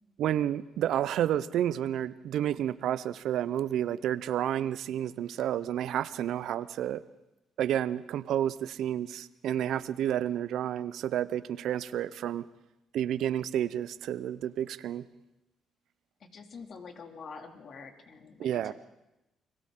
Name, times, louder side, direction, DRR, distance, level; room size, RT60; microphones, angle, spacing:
voice 1, 0.2-7.0 7.6-12.5 12.9-15.0 18.4-18.7, right 11 dB, 80° right, 16 dB, 0.7 m, -30 dB
voice 2, 16.3-18.7, left 5 dB, 55° left, 4 dB, 2.6 m, -46 dB
30.0 x 23.0 x 3.8 m, 0.94 s
cardioid pair, 90°, 0 cm